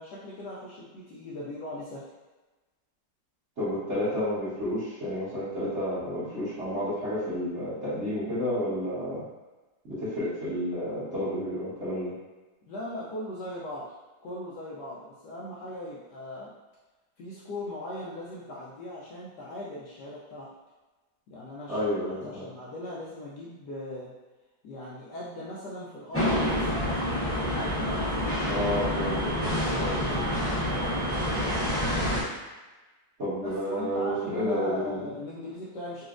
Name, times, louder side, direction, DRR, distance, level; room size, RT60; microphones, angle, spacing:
voice 1, 0.0-2.1 12.7-13.9 14.2-16.5 17.2-20.5 21.3-24.1 24.6-27.7 28.2-30.5 33.4-36.1, left 1 dB, 70° left, -6 dB, 1.0 m, -39 dB
voice 2, 3.6-9.2 9.8-12.1 21.7-22.4 28.5-29.2 29.5-30.2 30.5-30.6 33.2-35.1, equal, 40° right, -13 dB, 1.5 m, -31 dB
sound 1, 26.1-32.2, equal, 10° left, 0.6 m, -27 dB
4.0 x 2.4 x 2.4 m, 1.2 s
omnidirectional pair, 2.1 m